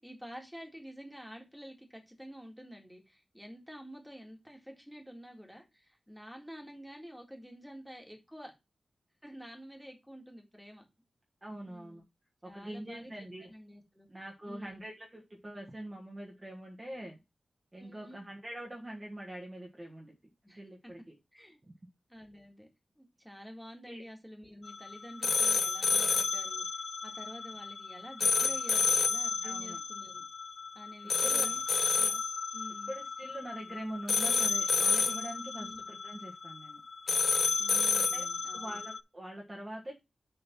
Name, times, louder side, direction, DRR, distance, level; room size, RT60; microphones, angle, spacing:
voice 1, 0.0-8.5 9.2-10.8 11.7-12.0 12.4-13.1 13.4-14.1 14.5-14.9 17.8-18.2 20.4-20.9 21.3-21.6 22.1-22.7 23.0-30.2 30.7-32.2 32.5-32.9 35.6-35.8 37.6-38.8, equal, ahead, 1.9 m, -49 dB
voice 2, 11.4-12.0 12.4-13.5 14.1-17.2 17.7-20.1 20.5-21.1 23.9-24.0 29.4-29.8 31.3-31.5 32.9-36.8 38.0-38.3 38.5-39.9, right 1 dB, 20° right, 1.4 m, -44 dB
sound 1, 24.6-39.0, left 4 dB, 55° left, 0.5 m, -31 dB
6.7 x 3.9 x 5.9 m
wide cardioid pair, 175°, 0 cm